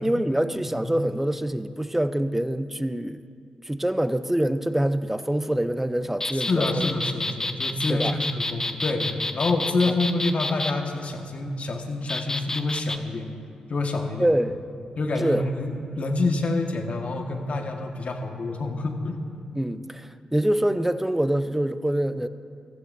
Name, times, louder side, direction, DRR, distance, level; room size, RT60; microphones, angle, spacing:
voice 1, 0.0-3.2 3.6-6.8 7.9-8.1 14.2-14.6 15.2-15.5 19.6-22.3, right 1 dB, 10° right, 12 dB, 0.7 m, -25 dB
sound 1, 6.2-10.7 12.1-13.0, left 2 dB, 20° left, 0.9 m, -29 dB
voice 2, 6.3-13.3 13.7-14.3 15.0-19.2, left 2 dB, 55° left, 3 dB, 1.5 m, -27 dB
22.0 x 14.5 x 2.7 m, 2.3 s
supercardioid pair, 40°, 3 cm